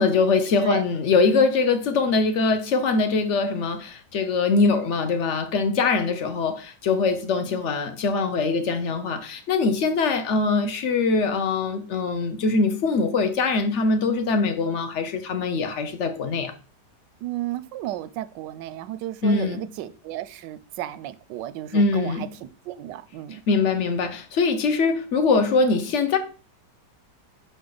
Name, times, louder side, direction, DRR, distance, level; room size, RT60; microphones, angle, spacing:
voice 1, 0.0-16.5 19.2-19.7 21.7-22.3 23.5-26.2, left 4 dB, 55° left, 0.9 m, -22 dB
voice 2, 17.2-22.3 22.7-23.4, right 14 dB, 90° right, 1.2 m, -33 dB
5.6 x 5.1 x 3.9 m
omnidirectional pair, 1.9 m